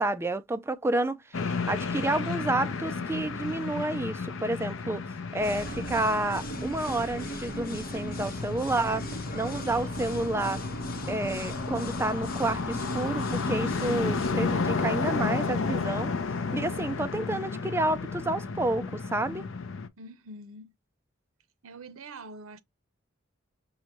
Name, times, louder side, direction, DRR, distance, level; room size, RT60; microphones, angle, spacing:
voice 1, 0.0-5.0 5.3-9.0 9.3-10.6 11.1-16.1 16.5-19.5, right 2 dB, 10° right, 0.3 m, -30 dB
sound 1, 1.3-19.9, left 4 dB, 70° left, 0.6 m, -32 dB
sound 2, 5.4-14.3, equal, 45° left, 1.1 m, -39 dB
voice 2, 20.0-20.7 21.6-22.6, right 2 dB, 85° right, 0.7 m, -44 dB
5.6 x 2.6 x 2.9 m
head